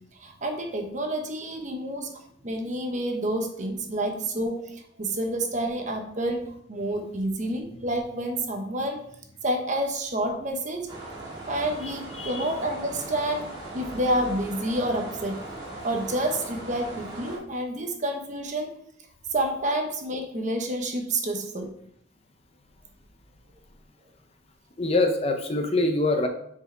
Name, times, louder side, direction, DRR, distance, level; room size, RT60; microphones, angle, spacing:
voice 1, 0.1-6.4 6.7-9.1 9.4-10.9 11.5-15.5 15.8-18.7 19.3-21.7, right 1 dB, 40° right, 4 dB, 1.0 m, -29 dB
sound 1, 10.9-17.4, right 2 dB, 20° right, 2.2 m, -39 dB
voice 2, 12.2-12.5 24.8-26.3, left 2 dB, 30° left, 5 dB, 0.7 m, -24 dB
6.7 x 4.8 x 4.5 m, 0.72 s
head